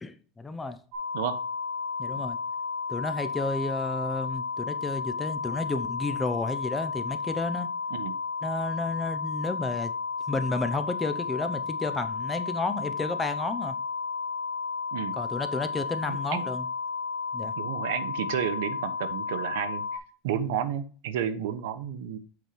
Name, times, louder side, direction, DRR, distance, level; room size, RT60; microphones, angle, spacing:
voice 1, 0.4-0.8 2.0-2.4 2.9-7.7 8.4-9.9 10.3-13.7 15.1-16.7 17.3-17.5, left 3 dB, 10° left, 0.6 m, -31 dB
sound 1, 0.9-20.0, left 5 dB, 55° right, 2.5 m, -33 dB
voice 2, 16.1-16.4 17.6-19.8 20.2-22.2, right 9 dB, 70° right, 1.0 m, -31 dB
8.0 x 5.1 x 4.5 m
supercardioid pair, 165°, 0 cm